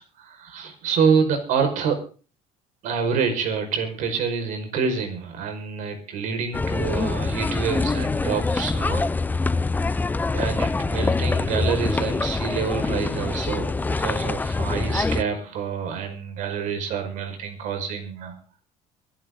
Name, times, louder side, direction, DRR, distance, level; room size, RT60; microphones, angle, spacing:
voice 1, 0.0-2.0 2.8-9.1 10.3-18.4, right 6 dB, 70° right, 7 dB, 5.6 m, -27 dB
sound 1, 6.5-15.2, left 3 dB, 15° left, 0.6 m, -24 dB
24.0 x 11.5 x 4.0 m, 0.38 s
cardioid pair, 135°, 14 cm